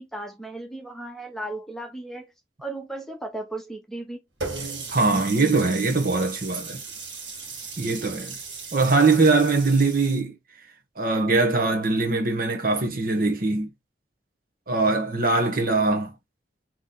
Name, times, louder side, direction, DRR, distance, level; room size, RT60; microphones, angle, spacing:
voice 1, 0.0-2.3 2.6-4.2, right 2 dB, ahead, 1.0 m, -35 dB
Water tap faucet, 4.4-10.2, right 4 dB, 75° right, 1.8 m, -37 dB
voice 2, 4.5-6.8 7.8-8.4 8.7-10.4 11.0-13.7 14.7-16.1, right 3 dB, 50° right, 1.1 m, -22 dB
4.0 x 3.1 x 3.8 m
head